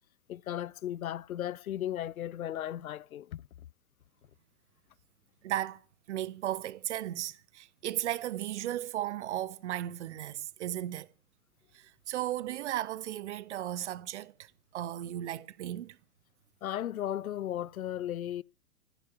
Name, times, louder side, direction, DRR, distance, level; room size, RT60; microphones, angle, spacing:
voice 1, 0.3-3.4 16.6-18.4, left 11 dB, 70° left, 0.6 m, -35 dB
voice 2, 5.4-5.8 6.1-11.1 11.7-16.0, right 13 dB, 50° right, 1.1 m, -35 dB
15.0 x 10.5 x 7.1 m
figure-of-eight pair, 110°, 44 cm